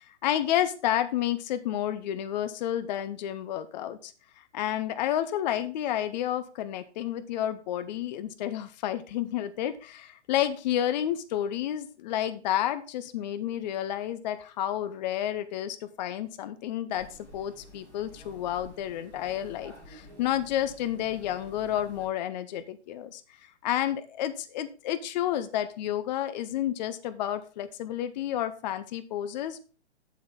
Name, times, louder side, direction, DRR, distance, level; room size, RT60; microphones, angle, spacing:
voice 1, 0.0-4.1 4.5-17.1 17.3-23.2 23.6-29.6, left 11 dB, 40° left, 13 dB, 0.8 m, -30 dB
sound 1, 16.9-22.1, left 2 dB, 5° left, 4.7 m, -50 dB
8.7 x 8.0 x 3.7 m, 0.35 s
figure-of-eight pair, 125°, 34 cm